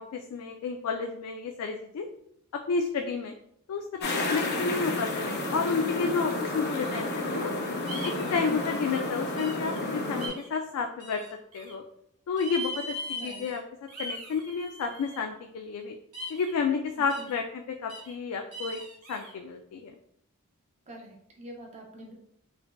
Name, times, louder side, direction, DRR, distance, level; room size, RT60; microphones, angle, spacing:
voice 1, 0.0-2.1 2.5-3.3 3.7-5.2 5.5-7.5 8.0-11.2 11.5-11.8 12.3-13.0 13.2-15.9 16.3-18.8 19.1-20.0, left 5 dB, 80° left, 4 dB, 0.3 m, -31 dB
sound 1, 4.0-10.3, left 2 dB, 50° left, 0.7 m, -31 dB
sound 2, 7.9-8.4 9.4-9.8 10.2-10.5 11.0-11.7 12.4-13.6 13.9-15.2 16.1-16.5 17.1-17.4 17.9-18.1 18.5-19.3, equal, 70° right, 1.2 m, -40 dB
voice 2, 8.5-8.8 13.1-13.4 17.0-17.3 20.9-22.1, equal, 30° right, -1 dB, 0.7 m, -44 dB
4.9 x 2.4 x 2.2 m, 0.75 s
head